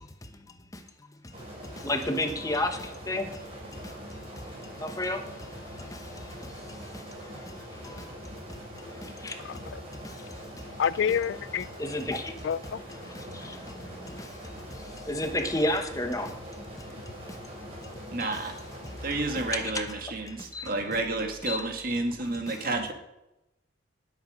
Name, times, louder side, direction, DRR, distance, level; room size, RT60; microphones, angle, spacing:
sound 1, 1.3-19.7, equal, 30° right, 4.6 m, -43 dB
voice 1, 1.8-3.4 3.7-4.0 4.4-8.1 8.8-9.6 10.0-10.2 10.6-10.8 11.8-12.3 13.0-16.3 16.8-16.9 17.3-17.4 18.2-18.3 19.5-19.8 20.2-20.9 21.4-21.6 22.5-22.7, left 1 dB, 15° left, 1.0 m, -34 dB
voice 2, 9.4-9.8 10.8-11.7 12.4-12.8, left 7 dB, 70° left, 0.3 m, -28 dB
voice 3, 18.1-18.5 19.0-22.9, right 2 dB, 45° right, 2.1 m, -30 dB
18.5 x 8.1 x 5.1 m
head